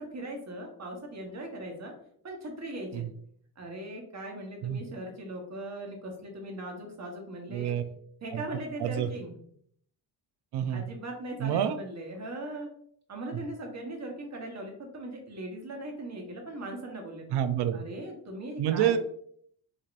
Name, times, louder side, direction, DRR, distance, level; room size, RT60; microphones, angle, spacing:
voice 1, 0.0-1.9 2.2-3.0 3.6-7.8 8.2-9.4 10.7-12.7 13.1-17.3 17.7-19.0, right 1 dB, 40° right, 2 dB, 1.1 m, -39 dB
voice 2, 7.5-7.8 8.3-8.4 8.8-9.1 10.5-10.8 11.4-11.8 17.3-17.8 18.6-19.0, right 10 dB, 65° right, 11 dB, 0.5 m, -27 dB
4.9 x 2.8 x 2.5 m, 0.64 s
cardioid pair, 100°, 43 cm